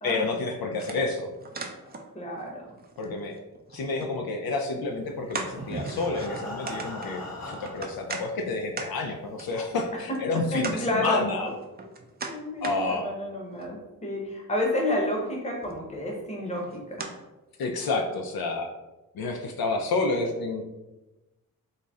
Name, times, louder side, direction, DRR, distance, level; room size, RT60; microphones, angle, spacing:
voice 1, 0.0-1.3 1.8-1.9 3.0-3.4 3.7-11.5 12.6-13.1 17.6-18.7 19.1-20.6, left 3 dB, 75° left, 3 dB, 0.5 m, -29 dB
sound 1, 0.8-2.4 2.7-4.2 4.6-4.7 5.3-8.2 8.8-8.9 9.4-9.5 10.1-10.2 10.6-10.8 11.4-12.8 13.3-13.8 15.1-15.3 15.6-16.1 16.5-17.1 17.6-17.7 18.4-18.5, right 4 dB, 25° right, 0.4 m, -38 dB
voice 2, 2.1-2.7 10.1-10.2 10.5-11.5 12.3-17.1, left 1 dB, 20° left, -1 dB, 0.9 m, -30 dB
Breathing, 5.1-8.1 8.8-8.9 9.3-9.4 9.8-9.9, left 1 dB, 45° left, 1.0 m, -40 dB
3.9 x 2.0 x 3.5 m, 1.0 s
cardioid pair, 80°, 37 cm